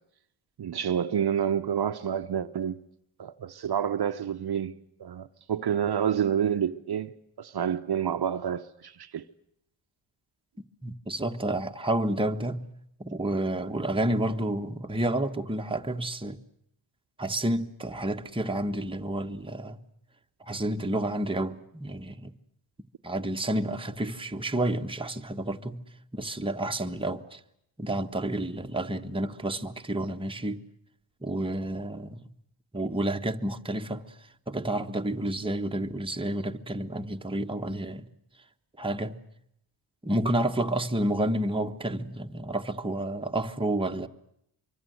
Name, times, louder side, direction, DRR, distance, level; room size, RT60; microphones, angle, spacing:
voice 1, 0.6-2.8 3.2-4.7 5.0-7.1 7.4-9.2, right 8 dB, 55° right, 1.0 m, -28 dB
voice 2, 10.8-12.7 13.0-16.4 17.2-19.8 20.4-22.3 23.0-25.8 26.1-27.4 27.8-30.6 31.2-32.3 32.7-34.1 34.5-38.1 38.8-39.2 40.0-44.1, right 1 dB, 10° right, 1.4 m, -30 dB
25.0 x 24.0 x 8.0 m
cardioid pair, 105°, 46 cm